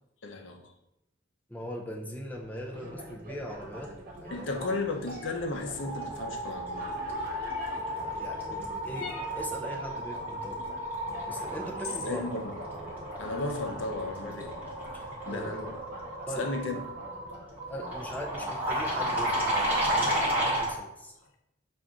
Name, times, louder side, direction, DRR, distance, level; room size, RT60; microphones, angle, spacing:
voice 1, 0.2-0.7 4.3-6.9 11.9-12.6 13.2-14.5 15.3-15.8 16.3-16.8, left 2 dB, 70° left, 4 dB, 0.6 m, -34 dB
voice 2, 1.5-4.7 7.9-10.6 11.3-12.2 14.9-15.5 16.3-16.5 17.7-21.1, equal, 10° left, -1 dB, 0.5 m, -40 dB
sound 1, 2.7-19.6, right 1 dB, 50° right, 1.1 m, -46 dB
sound 2, 4.9-5.2 5.5-20.8, right 1 dB, 10° right, 1.3 m, -33 dB
sound 3, 5.1-5.4 7.5-7.9 8.9-9.4 11.1-11.2 11.8-12.2, left 4 dB, 50° left, 1.3 m, -41 dB
5.8 x 2.6 x 3.6 m, 0.86 s
head